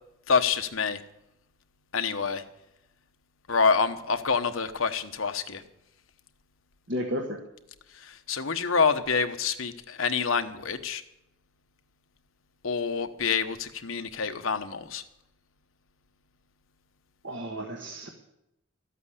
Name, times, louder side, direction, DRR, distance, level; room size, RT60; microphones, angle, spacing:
voice 1, 0.3-1.0 1.9-2.4 3.5-5.6 7.9-11.0 12.6-15.0, left 5 dB, 75° left, 8 dB, 1.1 m, -27 dB
voice 2, 6.9-7.4 17.2-18.1, equal, 60° right, 1 dB, 1.5 m, -32 dB
13.5 x 8.2 x 9.8 m, 0.86 s
head